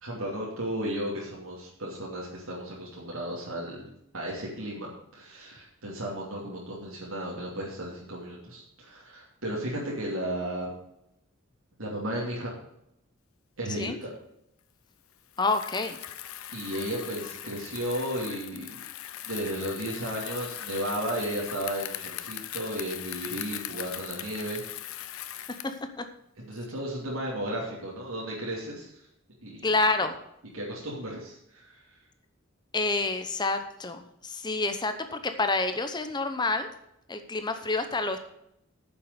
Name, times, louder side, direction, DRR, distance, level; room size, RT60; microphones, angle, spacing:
voice 1, 0.0-3.9 4.1-10.7 11.8-12.5 13.6-13.9 16.5-18.8 19.2-24.6 25.2-25.4 26.4-29.0 29.4-29.7 30.5-32.0, right 1 dB, 75° right, -4 dB, 2.8 m, -34 dB
Bicycle, 15.3-25.8, left 12 dB, 85° left, 0.7 m, -40 dB
voice 2, 15.4-16.0 25.6-26.1 29.6-30.2 32.7-36.7 37.1-38.2, left 3 dB, 20° left, 8 dB, 0.8 m, -28 dB
9.7 x 7.0 x 6.7 m, 0.78 s
head